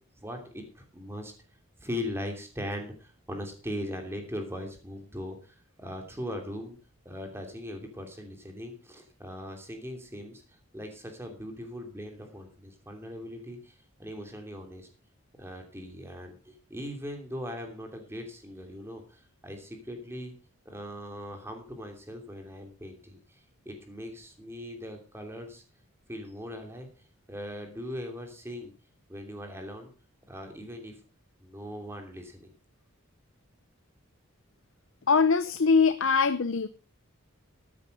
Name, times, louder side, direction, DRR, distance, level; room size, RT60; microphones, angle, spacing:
voice 1, 0.2-1.3 1.8-6.8 7.0-10.4 10.7-13.7 14.0-14.9 15.4-20.3 20.6-23.4 23.6-25.6 26.1-26.9 27.3-28.7 29.1-29.9 30.3-31.0 31.4-32.5, left 1 dB, 10° right, 4 dB, 2.8 m, -39 dB
voice 2, 35.1-36.7, left 5 dB, 65° left, 12 dB, 0.6 m, -22 dB
13.5 x 9.3 x 5.2 m, 0.35 s
head